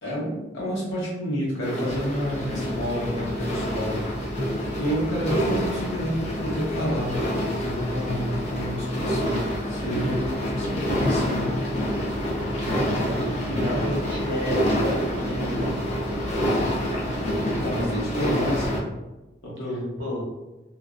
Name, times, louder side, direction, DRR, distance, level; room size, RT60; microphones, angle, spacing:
voice 1, 0.0-4.0 4.4-7.1 7.5-11.6 13.5-13.7 17.5-18.8 19.4-20.0, equal, 75° left, -6 dB, 1.0 m, -29 dB
sound 1, 1.6-18.8, equal, 35° left, 0.5 m, -27 dB
voice 2, 12.7-15.8 20.0-20.2, equal, 85° right, -3 dB, 0.8 m, -32 dB
2.5 x 2.1 x 2.4 m, 1.0 s
head